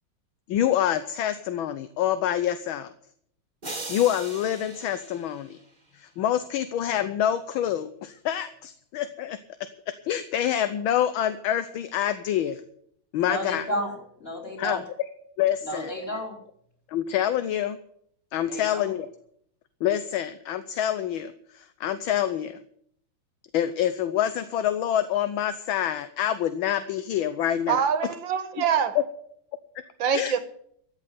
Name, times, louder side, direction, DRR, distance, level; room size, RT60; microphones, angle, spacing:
voice 1, 0.5-2.9 3.9-5.6 6.0-9.4 10.0-12.6 13.1-13.7 14.6-14.8 15.4-15.9 16.9-17.8 18.3-19.1 19.8-22.6 23.5-27.8 28.9-29.0 30.1-30.4, left 10 dB, 75° left, 1.5 m, -26 dB
sound 1, 3.6-6.0, right 2 dB, 20° right, 1.7 m, -39 dB
voice 2, 13.2-14.8 15.6-16.4 18.5-18.9, equal, 25° left, 4.8 m, -32 dB
voice 3, 27.7-29.0 30.0-30.4, right 7 dB, 65° right, 1.9 m, -24 dB
14.5 x 7.5 x 9.4 m
omnidirectional pair, 2.4 m